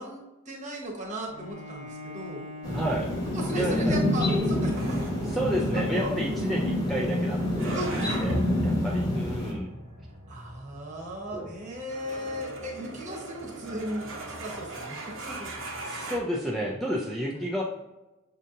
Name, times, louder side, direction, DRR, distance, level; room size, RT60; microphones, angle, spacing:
voice 1, 0.0-2.4 3.3-5.4 5.7-6.2 6.4-6.8 7.7-8.3 10.3-15.8 17.3-17.5, right 1 dB, 35° right, -1 dB, 1.0 m, -37 dB
Bowed string instrument, 1.3-6.5, left 1 dB, 55° left, 0.8 m, -44 dB
sound 1, 2.6-9.5, left 1 dB, 15° left, 1.0 m, -27 dB
voice 2, 2.7-3.1 3.6-4.0 5.3-8.3 8.6-9.7 11.3-11.5 15.8-17.6, equal, ahead, -4 dB, 0.4 m, -31 dB
sound 2, 4.8-16.2, right 1 dB, 80° right, 0.9 m, -39 dB
6.3 x 2.7 x 2.5 m, 1.0 s
head